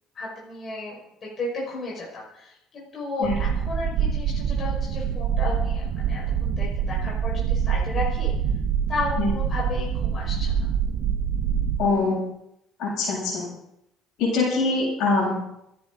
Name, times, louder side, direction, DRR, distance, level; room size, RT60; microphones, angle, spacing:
voice 1, 0.1-8.3 8.9-10.5, left 3 dB, 45° left, -4 dB, 5.8 m, -33 dB
sound 1, 3.2-11.9, right 7 dB, 70° right, 1.6 m, -25 dB
voice 2, 11.8-12.2 12.8-13.4 14.2-15.5, left 3 dB, 75° left, -4 dB, 7.9 m, -23 dB
27.0 x 10.5 x 4.1 m, 0.82 s
supercardioid pair, 85°, 0 cm